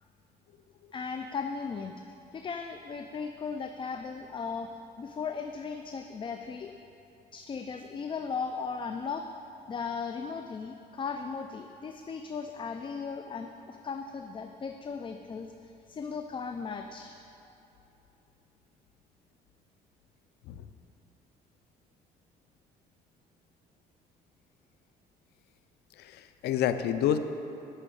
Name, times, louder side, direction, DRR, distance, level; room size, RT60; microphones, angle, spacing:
voice 1, 0.9-1.9 2.3-4.7 5.0-6.7 7.3-9.3 9.7-17.2, left 5 dB, 30° left, 6 dB, 0.5 m, -37 dB
voice 2, 26.0-27.2, left 10 dB, 75° left, 10 dB, 0.6 m, -28 dB
9.8 x 6.3 x 7.7 m, 2.9 s
cardioid pair, 110°, 17 cm